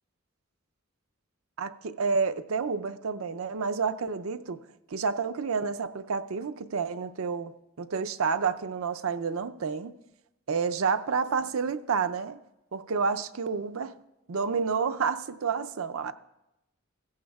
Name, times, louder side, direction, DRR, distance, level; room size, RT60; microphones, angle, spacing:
voice 1, 1.6-4.6 4.9-7.5 7.8-9.9 10.5-12.4 12.7-13.9 14.3-16.1, right 5 dB, 80° right, 11 dB, 0.5 m, -29 dB
16.5 x 15.0 x 2.3 m, 0.94 s
head